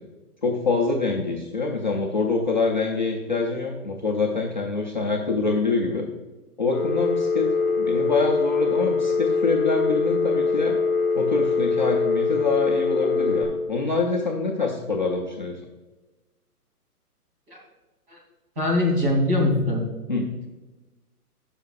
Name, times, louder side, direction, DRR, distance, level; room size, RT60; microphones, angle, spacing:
voice 1, 0.4-6.1 6.6-10.8 11.1-15.6 20.1-20.2, left 3 dB, 30° left, -3 dB, 0.5 m, -25 dB
Telephone, 6.7-13.4, left 4 dB, 5° right, 1.2 m, -23 dB
voice 2, 18.6-19.9, left 1 dB, 35° right, -2 dB, 3.0 m, -22 dB
17.0 x 5.8 x 2.4 m, 1.2 s
hypercardioid pair, 170°, 47 cm